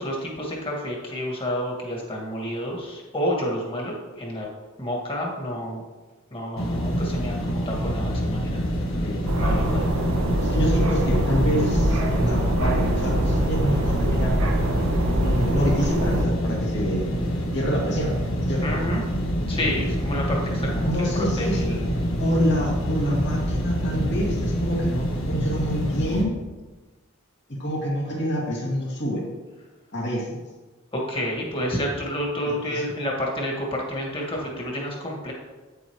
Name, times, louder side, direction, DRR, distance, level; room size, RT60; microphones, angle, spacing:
voice 1, 0.0-4.5 4.8-5.8 6.3-8.6 9.0-9.1 9.4-9.9 18.6-19.0 19.5-21.9 30.9-35.3, equal, 25° left, -2 dB, 2.0 m, -29 dB
sound 1, 6.6-26.2, equal, 75° left, 1.6 m, -26 dB
sound 2, 9.3-16.2, right 1 dB, 75° right, 1.1 m, -24 dB
voice 2, 10.4-14.3 15.1-17.1 17.5-18.2 18.5-18.6 20.8-21.6 22.2-26.4 27.6-29.2 29.9-30.4 32.7-32.8, equal, 55° left, -3 dB, 2.3 m, -27 dB
9.2 x 8.1 x 3.2 m, 1.2 s
head